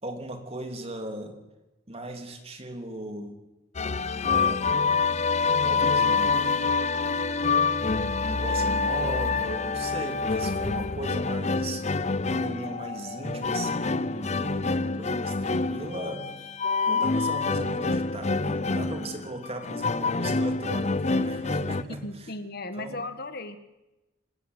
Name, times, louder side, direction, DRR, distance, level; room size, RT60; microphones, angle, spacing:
voice 1, 0.0-1.4 1.9-3.4 4.2-4.8 5.6-6.5 8.2-11.8 12.2-16.6 16.9-22.3 22.8-23.0, right 1 dB, 30° right, 5 dB, 3.3 m, -37 dB
sound 1, 3.7-21.8, left 4 dB, 35° left, 0.7 m, -26 dB
voice 2, 22.0-23.6, left 2 dB, 55° left, 10 dB, 1.6 m, -36 dB
27.0 x 14.5 x 8.2 m, 0.99 s
head